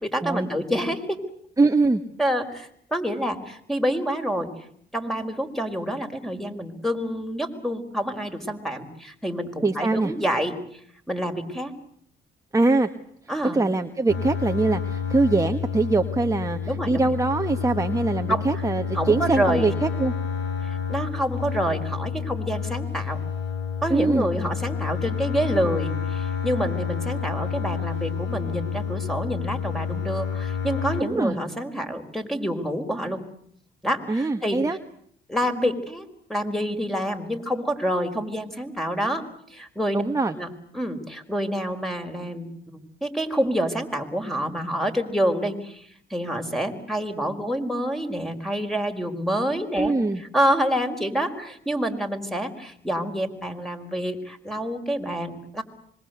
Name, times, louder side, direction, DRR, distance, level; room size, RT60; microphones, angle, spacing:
voice 1, 0.0-1.2 2.2-4.5 4.9-10.8 11.1-11.7 13.3-13.6 16.7-17.1 18.3-18.6 18.9-19.7 20.6-23.2 23.8-33.2 33.8-34.6 35.3-39.2 39.5-40.0 40.4-55.6, equal, ahead, 6 dB, 4.9 m, -27 dB
voice 2, 1.6-2.0 9.6-10.1 12.5-12.9 13.5-20.1 23.9-24.3 31.0-31.4 34.1-34.8 39.9-40.4 49.8-50.2, right 3 dB, 15° right, 6 dB, 1.7 m, -23 dB
sound 1, 14.1-31.0, left 6 dB, 75° left, 5.9 m, -29 dB
25.5 x 23.5 x 8.1 m, 0.66 s
cardioid pair, 90°, 20 cm